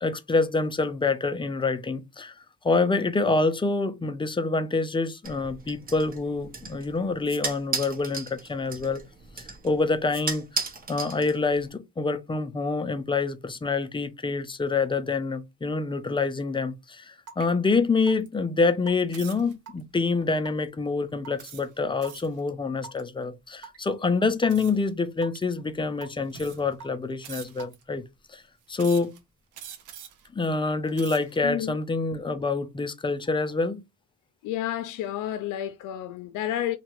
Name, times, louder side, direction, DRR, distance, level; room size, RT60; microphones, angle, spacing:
voice 1, 0.0-2.3 2.6-9.0 9.6-10.5 10.9-28.0 28.3-28.4 28.7-29.1 30.3-33.8, left 3 dB, 15° left, 0.4 m, -26 dB
sound 1, 5.2-11.7, right 4 dB, 30° right, 0.8 m, -36 dB
Raindrop / Water tap faucet / Drip, 17.3-17.5 18.1-18.3 18.9-19.1 19.7-20.0 20.5-20.7 21.2-21.4 22.0-22.3 22.8-23.0 23.6-23.9 24.4-24.7 25.2-25.5 26.0-26.3 26.8-27.1 27.6-27.8, right 5 dB, 55° right, 1.1 m, -43 dB
sound 2, 19.1-19.5 20.2-20.4 21.4-22.4 24.5-24.9 25.7-25.8 26.3-26.8 27.2-27.8 28.8-29.2 29.5-30.3 30.8-31.4, right 9 dB, 85° right, 0.6 m, -44 dB
voice 2, 31.4-31.8 34.4-36.8, left 11 dB, 85° left, 0.5 m, -30 dB
2.9 x 2.2 x 2.8 m
cardioid pair, 90°, 30 cm